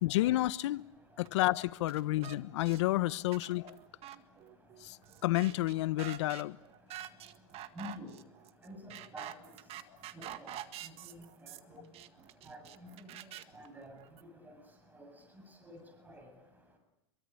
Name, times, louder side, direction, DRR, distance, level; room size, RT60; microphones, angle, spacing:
voice 1, 0.0-0.8 1.2-3.8 4.8-6.6, left 17 dB, 70° left, 1.1 m, -30 dB
sound 1, 1.3-1.4 1.8-2.4 2.7-2.8 3.1-14.2, right 12 dB, 40° right, 1.8 m, -47 dB
voice 2, 7.8-8.1 8.6-9.3 10.2-10.5 11.0-11.3 11.7-11.8 12.5-12.6 13.5-13.9 14.9-15.1 15.6-15.8 16.1-16.3, left 1 dB, 10° right, 7.8 m, -47 dB
27.0 x 23.5 x 8.6 m
hypercardioid pair, 115°, 15 cm